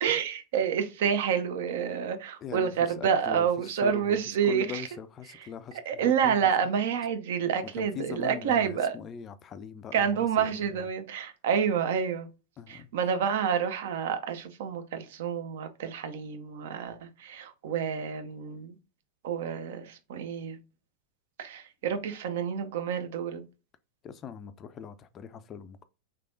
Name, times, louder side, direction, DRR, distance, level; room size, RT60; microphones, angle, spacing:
voice 1, 0.0-4.8 5.3-5.5 5.9-9.0 9.9-12.3 12.7-18.8 19.2-20.6 21.4-23.4, right 7 dB, 55° right, 0.5 m, -28 dB
voice 2, 2.4-4.2 4.5-6.4 7.8-10.5 12.6-12.9 24.0-25.8, left 7 dB, 30° left, 0.3 m, -41 dB
3.3 x 3.3 x 2.5 m
figure-of-eight pair, 90°, 0 cm